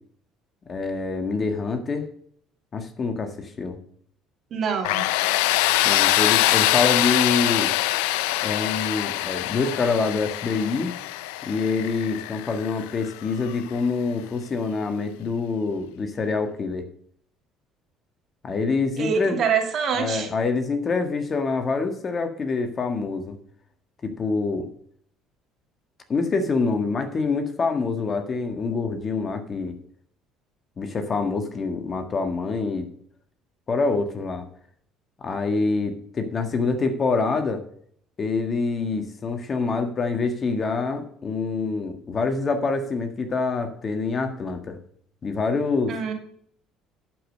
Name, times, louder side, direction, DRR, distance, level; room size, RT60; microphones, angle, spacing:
voice 1, 0.7-2.1 2.7-3.8 5.8-7.7 8.4-10.9 11.4-16.9 18.4-19.4 20.0-23.3 24.0-24.7 26.1-29.7 30.8-32.9 33.7-34.4 35.2-37.6 38.2-44.8 45.2-45.9, left 4 dB, 40° left, 7 dB, 1.6 m, -26 dB
voice 2, 4.5-5.1 19.0-20.3 45.9-46.1, right 6 dB, 55° right, 3 dB, 2.5 m, -25 dB
Tools, 4.8-13.6, left 16 dB, 90° left, 0.4 m, -24 dB
11.5 x 5.4 x 6.4 m, 0.62 s
supercardioid pair, 80°, 0 cm